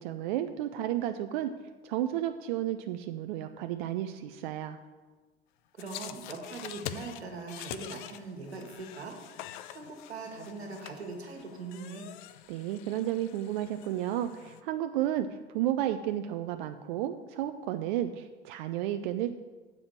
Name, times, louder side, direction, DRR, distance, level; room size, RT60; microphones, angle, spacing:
voice 1, 0.0-1.5 1.8-4.8 12.5-19.3, right 12 dB, 50° right, 8 dB, 0.5 m, -32 dB
sound 1, 5.8-14.6, left 12 dB, 50° left, 0.5 m, -45 dB
voice 2, 5.8-9.1 9.7-12.1, right 3 dB, 80° right, 1 dB, 1.5 m, -41 dB
7.5 x 5.0 x 7.1 m, 1.3 s
figure-of-eight pair, 80°, 32 cm